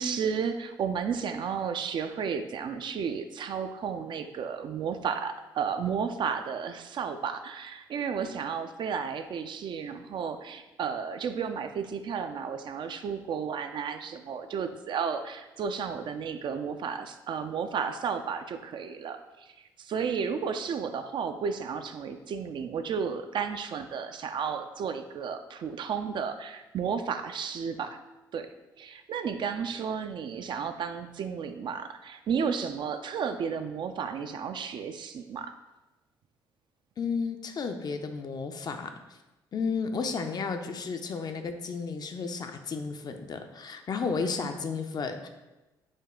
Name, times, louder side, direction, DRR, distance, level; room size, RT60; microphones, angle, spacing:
voice 1, 0.0-28.0 28.3-28.5 28.8-35.5, right 6 dB, 50° right, 8 dB, 0.3 m, -33 dB
voice 2, 37.0-39.2 39.5-45.3, left 5 dB, 40° left, 7 dB, 0.4 m, -33 dB
5.0 x 2.1 x 3.6 m, 1.1 s
hypercardioid pair, 50°, 10 cm